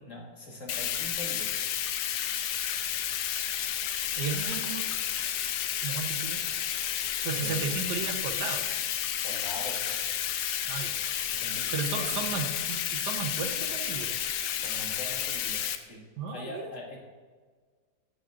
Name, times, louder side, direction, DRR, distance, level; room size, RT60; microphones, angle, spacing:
voice 1, 0.0-1.7 7.3-7.7 9.2-10.0 11.3-12.4 14.6-16.0 16.3-17.0, left 1 dB, 50° left, -2 dB, 2.0 m, -42 dB
Bathtub (filling or washing), 0.7-15.8, left 10 dB, 75° left, 1.1 m, -31 dB
voice 2, 4.2-4.8 5.8-6.4 7.2-8.6 10.7-10.9 11.7-14.2 16.2-16.7, right 6 dB, 80° right, 5 dB, 1.4 m, -34 dB
10.5 x 7.4 x 2.5 m, 1.5 s
omnidirectional pair, 1.8 m